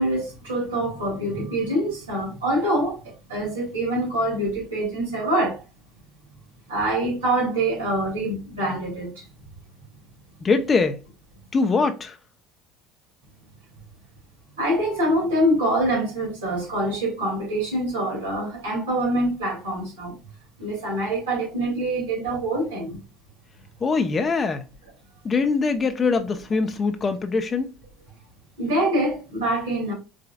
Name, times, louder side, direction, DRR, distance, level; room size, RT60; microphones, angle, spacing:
voice 1, 0.0-5.6 6.7-9.2 14.6-20.1 20.6-23.0 28.6-29.9, right 1 dB, 90° right, 2.8 m, -25 dB
voice 2, 10.4-11.0 11.5-12.2 23.8-24.6 25.2-27.7, left 4 dB, 35° left, 0.7 m, -22 dB
5.0 x 3.7 x 2.3 m
hypercardioid pair, 70°, 0 cm